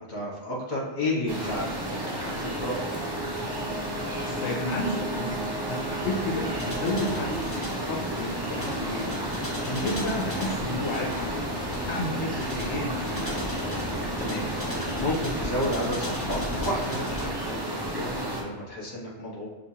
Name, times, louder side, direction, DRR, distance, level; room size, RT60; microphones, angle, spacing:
voice 1, 0.1-2.9 14.2-14.5 15.0-19.5, left 1 dB, 40° left, -4 dB, 1.3 m, -32 dB
sound 1, 1.3-18.4, right 1 dB, 25° right, 0.7 m, -32 dB
Brass instrument, 2.7-7.2, right 3 dB, 75° right, 1.0 m, -38 dB
voice 2, 4.4-5.4 5.7-9.1 9.6-11.4 11.9-13.2, left 1 dB, 75° left, -2 dB, 0.9 m, -31 dB
sound 2, 6.0-17.3, left 1 dB, 15° left, 0.7 m, -36 dB
6.6 x 2.7 x 2.8 m, 1.3 s
omnidirectional pair, 1.2 m